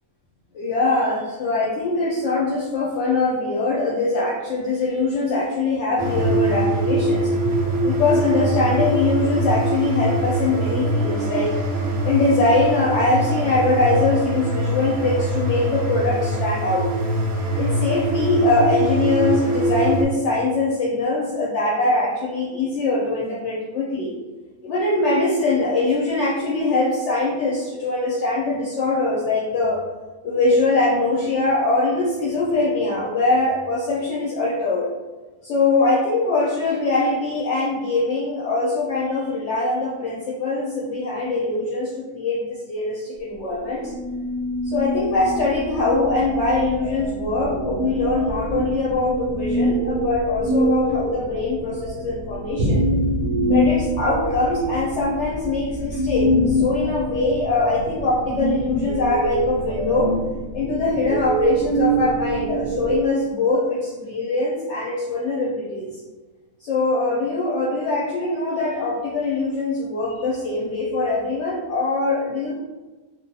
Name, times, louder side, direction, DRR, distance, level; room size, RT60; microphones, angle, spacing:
voice 1, 0.5-7.3 7.8-11.5 12.0-16.9 17.6-24.1 24.6-29.8 30.2-34.9 35.4-43.9 44.6-52.9 53.5-60.2 60.5-65.9 66.6-72.6, left 2 dB, 65° left, -4 dB, 0.7 m, -22 dB
sound 1, 6.0-20.0, right 1 dB, 90° right, 1.1 m, -23 dB
sound 2, 43.8-63.0, right 1 dB, 65° right, 0.8 m, -25 dB
2.8 x 2.2 x 2.6 m, 1.2 s
omnidirectional pair, 1.5 m